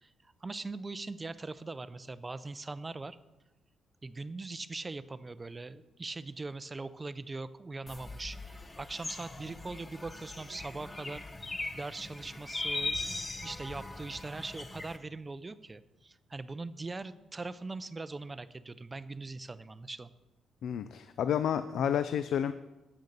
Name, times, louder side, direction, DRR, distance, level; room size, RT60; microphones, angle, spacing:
voice 1, 0.0-3.2 4.0-11.2 11.7-20.1, right 3 dB, 25° right, 15 dB, 0.4 m, -41 dB
sound 1, 7.9-15.0, left 2 dB, 25° left, 0.9 m, -40 dB
voice 2, 20.6-22.5, left 9 dB, 75° left, 12 dB, 0.4 m, -30 dB
8.6 x 6.5 x 6.6 m, 1.0 s
cardioid pair, 100°, 0 cm